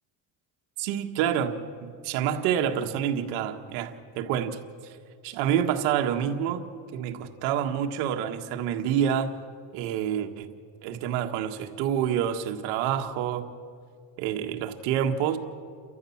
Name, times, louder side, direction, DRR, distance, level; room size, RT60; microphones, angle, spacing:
voice 1, 0.8-1.6 1.8-5.0 5.2-6.7 6.9-9.4 9.7-10.5 10.8-13.4 14.2-15.4, right 9 dB, 90° right, 5 dB, 1.7 m, -28 dB
30.0 x 14.0 x 7.2 m, 2.2 s
cardioid pair, 140°, 38 cm